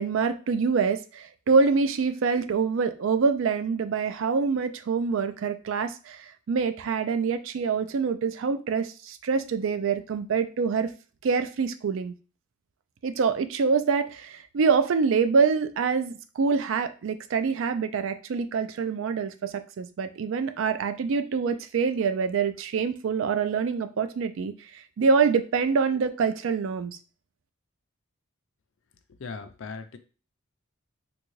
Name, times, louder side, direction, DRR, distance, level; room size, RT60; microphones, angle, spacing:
voice 1, 0.0-10.9 11.2-12.1 13.0-27.0, right 5 dB, 65° right, 10 dB, 0.3 m, -25 dB
voice 2, 29.1-30.0, left 4 dB, 60° left, 9 dB, 0.4 m, -38 dB
3.7 x 2.3 x 3.1 m, 0.36 s
head